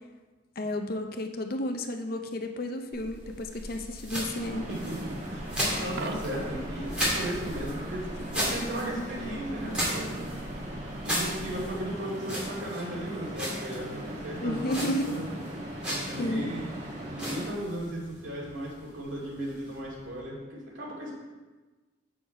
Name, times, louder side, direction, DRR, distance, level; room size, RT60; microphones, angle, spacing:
voice 1, 0.6-4.7 14.4-15.1 16.2-16.5, left 1 dB, 50° left, 5 dB, 0.6 m, -32 dB
sound 1, 2.9-20.2, equal, 5° right, 2.0 m, -37 dB
sound 2, 4.4-17.5, right 1 dB, 35° right, 1.3 m, -39 dB
voice 2, 4.7-10.3 11.0-15.3 15.8-16.6 17.1-21.2, right 1 dB, 70° right, -5 dB, 2.4 m, -36 dB
Coin (dropping), 5.9-6.7 12.8-13.0, right 4 dB, 55° right, 0.4 m, -42 dB
7.1 x 6.4 x 4.4 m, 1.3 s
head